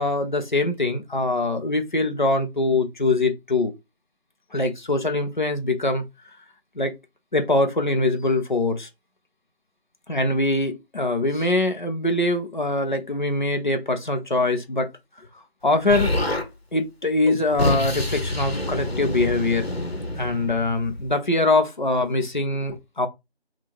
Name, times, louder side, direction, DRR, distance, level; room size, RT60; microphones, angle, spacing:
voice 1, 0.0-3.7 4.5-6.0 6.8-7.0 7.3-8.9 10.1-14.9 15.6-16.2 16.7-19.7 20.2-23.1, left 2 dB, 50° left, 0.8 m, -23 dB
Explosion, 15.9-16.5 17.2-21.1, left 1 dB, 70° left, 1.2 m, -27 dB
3.6 x 2.4 x 4.3 m
figure-of-eight pair, 170°, 32 cm